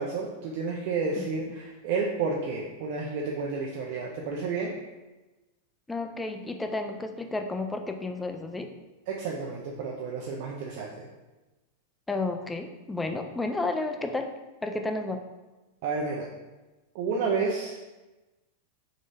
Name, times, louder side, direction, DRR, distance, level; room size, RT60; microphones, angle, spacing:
voice 1, 0.0-4.7 9.1-11.1 15.8-16.3 16.9-17.8, right 4 dB, 55° right, -2 dB, 0.5 m, -31 dB
voice 2, 1.2-1.5 5.9-8.7 12.1-14.3 14.6-15.2, left 2 dB, 10° left, 5 dB, 0.3 m, -32 dB
3.8 x 3.1 x 2.6 m, 1.1 s
supercardioid pair, 130°, 0 cm